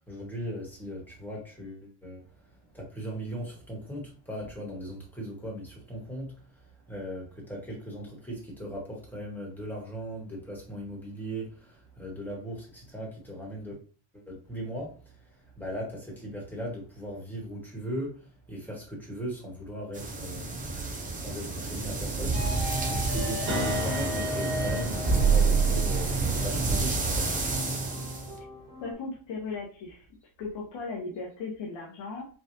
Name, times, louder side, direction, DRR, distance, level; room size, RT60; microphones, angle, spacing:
voice 1, 0.1-2.2 2.7-6.3 6.9-13.8 14.1-14.9 15.6-20.6 21.1-27.3, equal, 5° left, 1.4 m, -38 dB
sound 1, 19.9-28.3, right 3 dB, 15° right, 0.6 m, -31 dB
sound 2, 22.3-28.9, right 4 dB, 45° right, 1.6 m, -29 dB
voice 2, 28.8-30.1 30.4-32.3, left 3 dB, 65° left, 1.1 m, -37 dB
4.6 x 2.5 x 2.7 m
cardioid pair, 145°, 48 cm